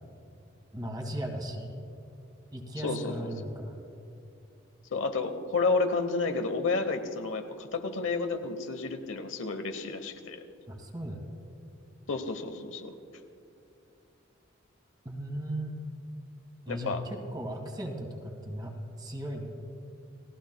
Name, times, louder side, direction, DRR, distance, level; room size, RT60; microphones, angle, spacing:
voice 1, 0.7-1.8 2.5-3.7 10.7-11.2 15.1-15.7 16.7-18.7 19.0-19.6, right 1 dB, 20° right, 2 dB, 1.6 m, -37 dB
voice 2, 2.8-3.3 4.9-10.4 12.1-12.9 16.7-17.0, left 4 dB, 75° left, 7 dB, 0.9 m, -31 dB
30.0 x 16.5 x 2.2 m, 2.7 s
head